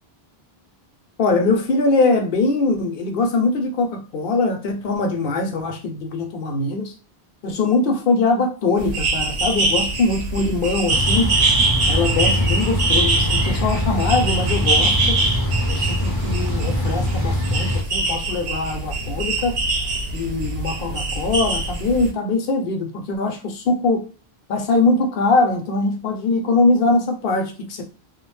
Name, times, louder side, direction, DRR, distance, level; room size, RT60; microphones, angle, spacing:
voice 1, 1.2-6.9 7.4-11.3 11.9-15.2 15.7-19.6 20.1-24.0 24.5-27.8, left 3 dB, 65° left, 0.7 m, -22 dB
sound 1, 8.8-22.1, right 2 dB, 75° right, 0.8 m, -23 dB
sound 2, 10.9-17.8, left 1 dB, 25° right, 0.6 m, -23 dB
2.3 x 2.1 x 3.0 m
omnidirectional pair, 1.1 m